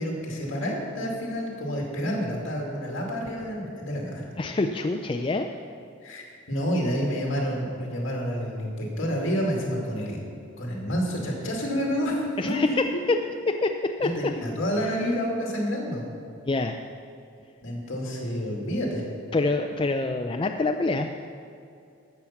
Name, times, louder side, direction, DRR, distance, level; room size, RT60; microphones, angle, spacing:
voice 1, 0.0-4.3 6.0-10.2 10.6-12.8 13.1-13.2 14.0-16.0 17.6-19.1, equal, 65° left, -1 dB, 2.3 m, -29 dB
voice 2, 4.4-5.5 12.4-13.2 13.5-14.1 16.5-16.8 19.3-21.1, left 3 dB, 25° left, 4 dB, 0.3 m, -26 dB
13.5 x 7.1 x 5.8 m, 2.5 s
head